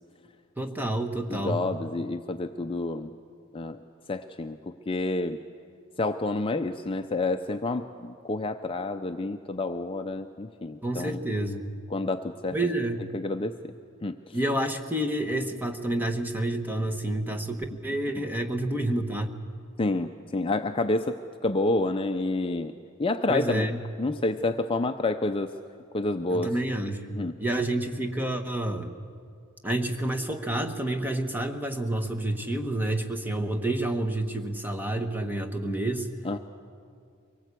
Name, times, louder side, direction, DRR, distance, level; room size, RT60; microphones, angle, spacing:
voice 1, 0.6-1.6 10.8-11.7 12.5-13.0 14.3-19.3 23.3-23.8 26.3-28.9 29.6-36.1, right 1 dB, 10° right, 6 dB, 1.2 m, -29 dB
voice 2, 1.3-3.1 3.5-3.8 4.1-5.4 6.0-11.2 11.9-12.6 13.1-13.5 14.0-14.4 19.8-22.7 23.0-23.7 24.0-25.5 25.9-26.5 27.2-27.3 36.2-36.4, left 2 dB, 25° left, 7 dB, 0.5 m, -29 dB
24.0 x 18.0 x 8.3 m, 2.3 s
head